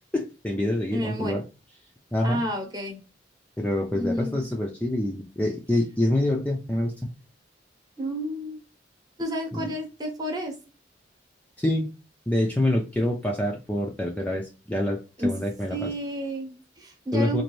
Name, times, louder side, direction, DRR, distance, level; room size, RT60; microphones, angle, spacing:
voice 1, 0.1-1.4 2.1-2.4 3.6-6.9 9.5-9.7 11.6-11.9 12.3-15.9 17.1-17.4, left 1 dB, 10° left, 0 dB, 0.5 m, -26 dB
voice 2, 0.9-1.4 2.2-3.0 3.9-4.5 8.0-8.6 9.2-10.5 15.2-15.3 15.7-17.4, equal, 20° right, 2 dB, 1.0 m, -30 dB
4.0 x 2.6 x 3.0 m, 0.30 s
head